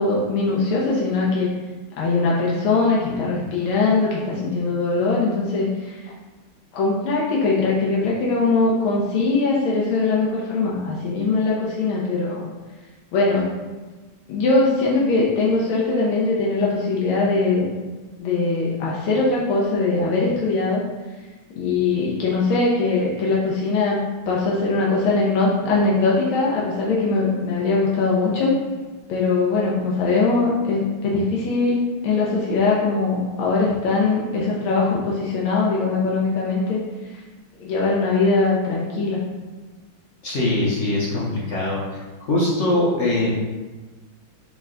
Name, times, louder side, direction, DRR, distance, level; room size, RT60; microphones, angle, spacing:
voice 1, 0.0-1.5 2.0-6.1 6.7-12.5 13.1-13.4 14.3-17.7 18.2-20.8 21.5-28.5 29.1-36.8 37.1-37.2 37.6-39.2, left 3 dB, 90° left, -5 dB, 1.6 m, -21 dB
voice 2, 40.2-42.0 42.3-43.3, left 2 dB, 60° left, -6 dB, 0.7 m, -22 dB
5.8 x 2.2 x 3.7 m, 1.3 s
omnidirectional pair, 2.3 m